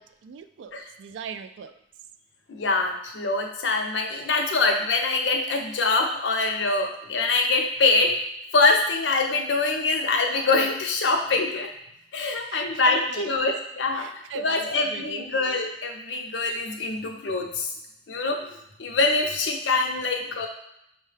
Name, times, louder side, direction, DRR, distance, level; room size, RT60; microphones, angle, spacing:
voice 1, 0.0-1.7 12.5-13.3 14.0-15.3, right 7 dB, 90° right, 10 dB, 0.3 m, -39 dB
voice 2, 2.5-8.1 8.5-11.7 12.1-17.7 18.1-18.5 18.8-20.5, left 3 dB, 80° left, 3 dB, 0.6 m, -24 dB
5.4 x 2.2 x 3.2 m, 0.76 s
head